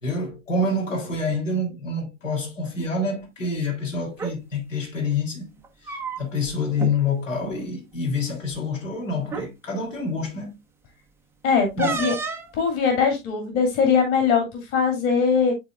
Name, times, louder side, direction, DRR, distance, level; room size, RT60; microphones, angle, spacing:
voice 1, 0.0-5.5 5.8-10.5 11.7-12.1, left 3 dB, 70° left, 3.3 m, -27 dB
sound 1, 4.1-4.3 5.6-6.5 6.8-6.9 7.3-7.6 8.5-8.6 9.2-9.5 11.8-12.5, right 5 dB, 5° right, 0.9 m, -30 dB
voice 2, 11.4-12.2 12.5-15.5, left 6 dB, 35° left, 2.5 m, -21 dB
11.0 x 4.0 x 2.4 m
figure-of-eight pair, 100°, 39 cm